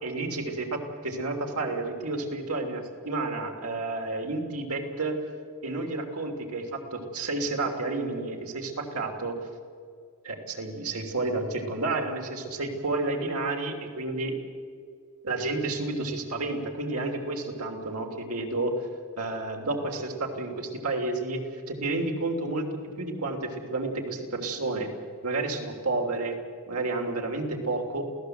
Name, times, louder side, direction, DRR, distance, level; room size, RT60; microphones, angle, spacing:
voice 1, 0.0-5.2 5.6-9.4 10.2-14.3 15.2-18.7 19.2-24.9 25.2-26.4 26.7-28.0, right 2 dB, 75° right, 2 dB, 3.2 m, -31 dB
28.0 x 17.0 x 8.0 m, 2.2 s
head